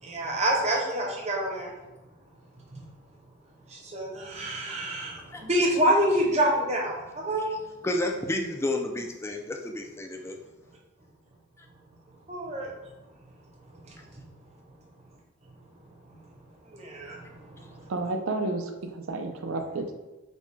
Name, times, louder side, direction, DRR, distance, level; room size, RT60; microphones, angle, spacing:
voice 1, 0.0-1.7 2.7-2.8 3.7-7.5 12.3-12.7 13.9-14.0 16.7-17.9, right 1 dB, 30° right, -1 dB, 0.7 m, -27 dB
voice 2, 7.8-10.4, left 1 dB, 15° left, 2 dB, 0.3 m, -30 dB
voice 3, 17.9-19.9, right 2 dB, 85° right, 5 dB, 0.5 m, -31 dB
5.2 x 2.2 x 3.2 m, 1.1 s
head